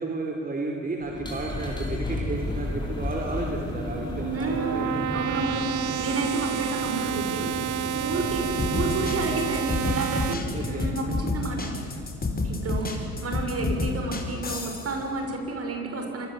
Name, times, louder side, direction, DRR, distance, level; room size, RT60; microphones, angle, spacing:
voice 1, 0.0-5.0 10.5-10.8, right 3 dB, 30° right, 1 dB, 4.4 m, -33 dB
sound 1, 1.0-15.4, left 1 dB, 15° left, 7.5 m, -35 dB
sound 2, 3.8-10.3, right 10 dB, 80° right, 1.6 m, -30 dB
voice 2, 4.3-11.7 12.4-16.3, right 2 dB, 50° right, 3 dB, 6.9 m, -31 dB
sound 3, 8.4-14.9, left 3 dB, 30° left, 5.3 m, -29 dB
26.5 x 23.0 x 9.4 m, 2.4 s
cardioid pair, 90°, 30 cm